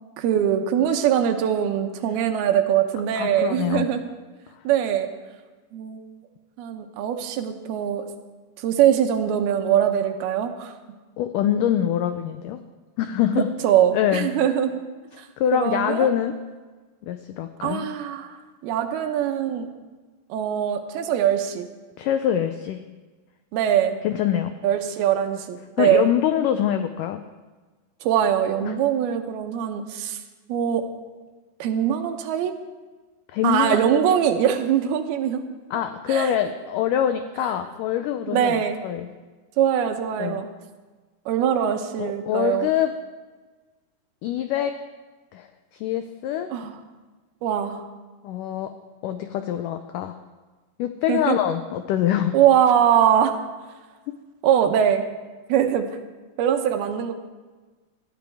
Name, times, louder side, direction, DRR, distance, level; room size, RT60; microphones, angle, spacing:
voice 1, 0.2-4.1 4.6-5.1 5.7-6.0 6.6-8.0 8.6-10.7 13.4-14.8 15.2-15.3 15.5-16.1 17.6-18.4 18.6-19.7 20.3-21.7 23.5-24.0 24.6-26.1 28.0-30.2 30.5-30.9 31.6-32.5 33.4-35.5 36.1-36.3 38.3-38.8 39.6-40.5 41.3-42.7 46.5-46.8 47.4-47.8 51.1-51.4 52.3-53.4 54.4-55.0 55.5-55.9 56.4-57.1, right 9 dB, 80° right, 6 dB, 2.8 m, -22 dB
voice 2, 3.2-3.9 11.2-12.6 13.0-13.5 13.9-14.3 15.4-16.3 17.0-17.9 22.0-22.8 24.0-24.6 25.8-27.2 28.6-28.8 33.3-33.8 35.7-39.1 40.2-40.4 42.0-42.9 44.2-44.8 45.3-46.5 48.2-48.7 49.0-50.2 50.8-52.3, left 10 dB, 85° left, 8 dB, 1.8 m, -24 dB
19.5 x 13.0 x 3.5 m, 1.3 s
omnidirectional pair, 4.4 m